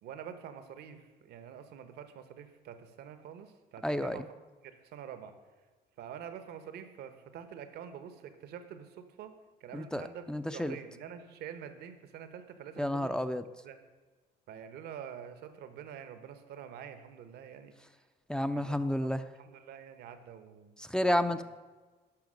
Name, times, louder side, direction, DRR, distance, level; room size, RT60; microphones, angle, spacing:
voice 1, 0.0-4.4 4.6-5.3 6.0-9.3 9.6-13.2 13.6-13.8 14.5-17.7 18.5-20.7 21.1-21.4, right 8 dB, 75° right, 9 dB, 1.1 m, -47 dB
voice 2, 3.8-4.2 9.7-10.0 10.3-10.8 12.8-13.4 18.3-19.2 20.8-21.4, left 1 dB, 5° left, 10 dB, 0.5 m, -30 dB
12.0 x 5.8 x 6.4 m, 1.3 s
cardioid pair, 110°, 17 cm